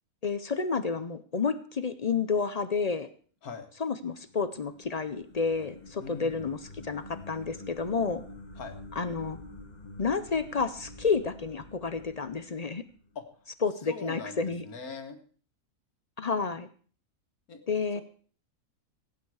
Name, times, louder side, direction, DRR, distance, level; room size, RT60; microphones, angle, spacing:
voice 1, 0.2-3.1 3.8-6.6 6.8-8.2 9.0-9.4 10.0-12.8 13.6-14.6 16.2-16.7 17.7-18.0, left 5 dB, 50° left, 11 dB, 0.5 m, -30 dB
sound 1, 4.0-13.3, left 2 dB, 35° left, 1.2 m, -48 dB
voice 2, 6.0-6.4 8.6-8.8 13.2-13.3 13.8-15.2 17.5-17.6 18.0-18.1, left 4 dB, 90° left, 6 dB, 1.9 m, -41 dB
16.5 x 8.9 x 4.8 m, 0.43 s
omnidirectional pair, 1.5 m